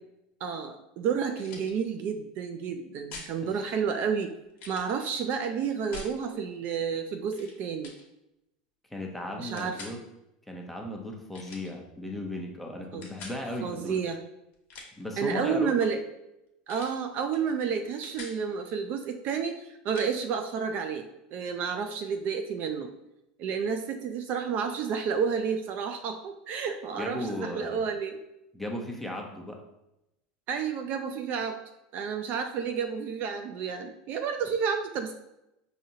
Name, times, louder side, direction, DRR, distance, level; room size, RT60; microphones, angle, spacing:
voice 1, 0.4-4.3 4.7-7.9 9.4-9.8 12.9-13.1 13.6-14.2 15.2-16.0 16.7-22.9 23.4-28.2 30.5-31.6 31.9-35.1, right 6 dB, 50° right, 6 dB, 0.4 m, -30 dB
sound 1, 1.4-1.7 3.1-3.3 4.6-5.0 5.9-6.2 7.3-7.5 7.8-8.0 9.6-10.0 11.3-11.7 13.0-13.4 14.5-15.1 16.7-17.0 17.3-17.5 17.8-18.4 19.9-20.1, left 4 dB, 50° left, 1.0 m, -44 dB
voice 2, 8.9-10.0 10.5-13.9 15.0-15.7 26.9-27.8 28.5-29.6, left 1 dB, 5° left, 0 dB, 0.7 m, -36 dB
4.9 x 2.7 x 2.7 m, 0.88 s
supercardioid pair, 110°, 4 cm